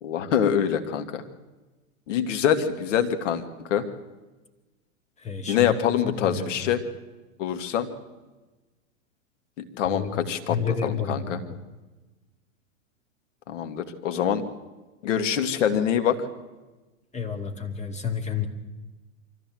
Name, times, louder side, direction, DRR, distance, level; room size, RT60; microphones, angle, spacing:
voice 1, 0.0-1.2 2.1-3.9 5.5-6.8 7.4-7.9 9.6-11.4 13.5-14.4 15.0-16.2, left 9 dB, 65° left, 7 dB, 2.2 m, -25 dB
voice 2, 5.2-5.7 6.0-6.7 9.9-10.1 10.5-11.6 17.1-18.5, left 6 dB, 15° left, 5 dB, 2.5 m, -30 dB
24.5 x 14.5 x 7.9 m, 1.2 s
hypercardioid pair, 105°, 40 cm